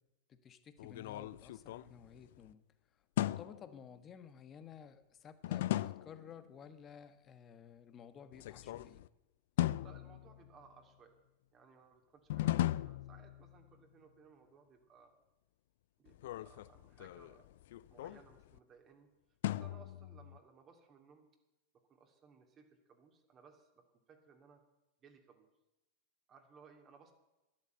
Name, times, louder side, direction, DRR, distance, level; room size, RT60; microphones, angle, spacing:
voice 1, 0.3-2.6 3.2-9.0, left 7 dB, 30° left, 11 dB, 1.3 m, -54 dB
sound 1, 0.8-2.5 3.2-3.8 5.4-6.3 8.3-9.1 9.6-10.7 12.3-13.7 16.1-18.6 19.4-20.4, left 14 dB, 65° left, 0.4 m, -38 dB
voice 2, 9.8-11.2 11.5-15.1 16.0-17.5 17.9-19.1 19.5-21.3 21.9-24.6 25.0-25.5 26.3-27.1, right 5 dB, 30° right, 4 dB, 2.7 m, -62 dB
12.0 x 11.0 x 7.9 m, 1.0 s
hypercardioid pair, 95°, 0 cm